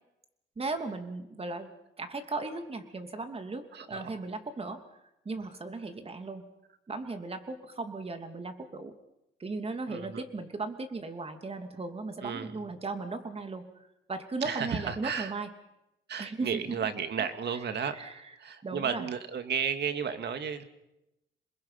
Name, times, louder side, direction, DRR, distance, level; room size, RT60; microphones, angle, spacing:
voice 1, 0.6-1.7 2.0-4.8 5.2-6.5 6.9-8.9 9.4-13.7 14.1-15.5 16.2-16.9 17.9-18.1 18.6-19.1, right 3 dB, 30° right, 7 dB, 2.8 m, -37 dB
voice 2, 3.7-4.1 9.9-10.2 12.2-12.6 14.4-15.3 16.1-20.6, right 7 dB, 60° right, 8 dB, 2.2 m, -33 dB
28.0 x 21.0 x 5.8 m, 0.91 s
cardioid pair, 90°, 20 cm